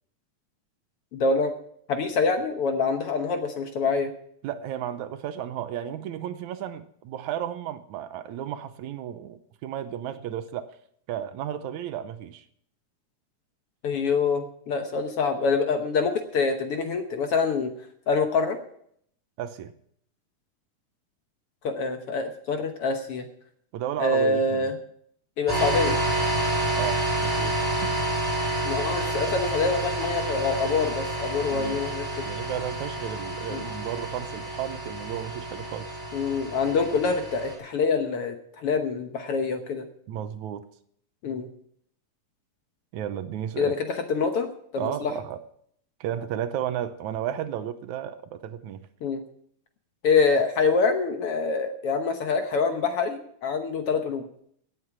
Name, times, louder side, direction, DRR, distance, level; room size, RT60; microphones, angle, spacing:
voice 1, 1.1-1.5 1.9-4.1 13.8-17.7 18.1-18.6 21.6-23.3 24.0-24.7 25.4-26.0 28.6-32.3 33.5-33.6 36.1-39.8 41.2-41.5 43.6-45.1 49.0-49.2 50.0-54.2, left 4 dB, 60° left, 6 dB, 1.7 m, -25 dB
voice 2, 4.4-10.7 11.1-12.4 19.4-19.7 23.7-24.7 26.7-27.6 27.8-28.0 31.5-31.8 32.3-35.9 40.1-40.6 42.9-43.7 44.8-45.4 46.0-48.9, right 10 dB, 80° right, 11 dB, 2.1 m, -33 dB
sound 1, 25.5-37.6, right 1 dB, 5° right, 4.6 m, -29 dB
17.0 x 8.3 x 6.0 m, 0.67 s
omnidirectional pair, 3.5 m